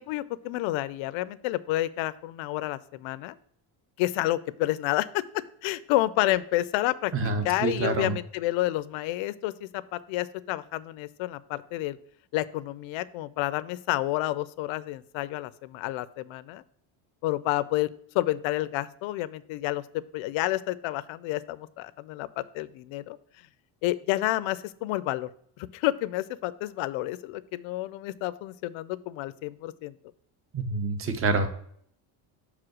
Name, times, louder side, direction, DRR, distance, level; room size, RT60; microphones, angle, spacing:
voice 1, 0.0-3.4 4.0-5.2 5.6-7.1 7.4-12.0 12.3-16.6 17.2-17.9 18.1-23.2 23.8-25.3 25.6-29.9, left 16 dB, 80° left, 17 dB, 0.6 m, -29 dB
voice 2, 7.1-8.2 30.5-31.5, right 3 dB, 30° right, 9 dB, 0.8 m, -27 dB
5.6 x 4.9 x 6.1 m, 0.65 s
cardioid pair, 130°, 47 cm